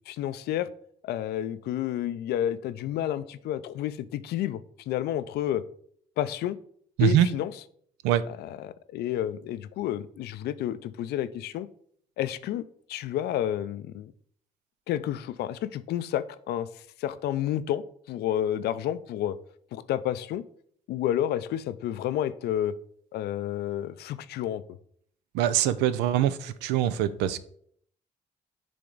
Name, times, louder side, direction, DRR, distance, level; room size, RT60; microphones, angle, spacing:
voice 1, 0.1-0.7 1.0-5.6 6.2-6.6 7.0-7.5 8.3-11.7 12.2-12.6 12.9-14.1 14.9-19.4 19.7-20.4 20.9-22.7 23.1-24.6, left 11 dB, 80° left, 14 dB, 0.4 m, -30 dB
voice 2, 25.3-27.4, right 11 dB, 90° right, 14 dB, 0.4 m, -23 dB
8.5 x 3.4 x 3.9 m, 0.62 s
supercardioid pair, 50°, 17 cm